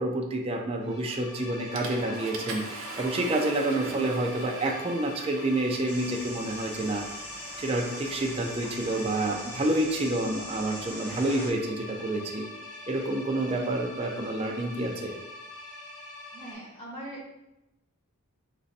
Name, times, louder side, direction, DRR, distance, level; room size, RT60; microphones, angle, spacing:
voice 1, 0.0-7.0 7.6-12.4 12.9-15.1, right 1 dB, 25° right, 1 dB, 0.4 m, -28 dB
sound 1, 0.8-16.5, left 2 dB, 55° left, 0.8 m, -43 dB
Water / Toilet flush, 1.1-1.3 1.8-9.6, right 3 dB, 65° right, 0.7 m, -43 dB
sound 2, 5.9-11.5, equal, 10° left, 0.7 m, -43 dB
voice 2, 16.3-17.3, right 1 dB, 25° left, -5 dB, 1.3 m, -41 dB
5.2 x 3.0 x 2.7 m, 0.92 s
head